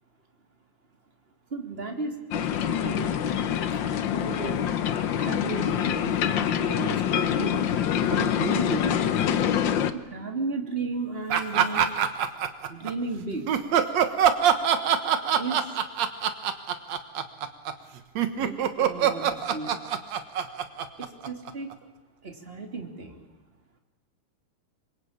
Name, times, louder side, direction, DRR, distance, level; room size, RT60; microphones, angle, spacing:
voice 1, 1.5-2.2 2.8-3.1 3.7-3.8 4.1-4.6 5.1-9.1 9.9-12.0 12.7-13.6 15.4-15.7 18.4-19.7 21.0-21.7 22.2-23.3, right 3 dB, 20° right, 3 dB, 3.0 m, -34 dB
sound 1, 2.3-9.9, left 9 dB, 80° left, 1.0 m, -25 dB
sound 2, 11.3-12.9 13.5-21.7, right 9 dB, 65° right, 2.6 m, -24 dB
26.5 x 23.5 x 8.7 m, 1.2 s
omnidirectional pair, 3.5 m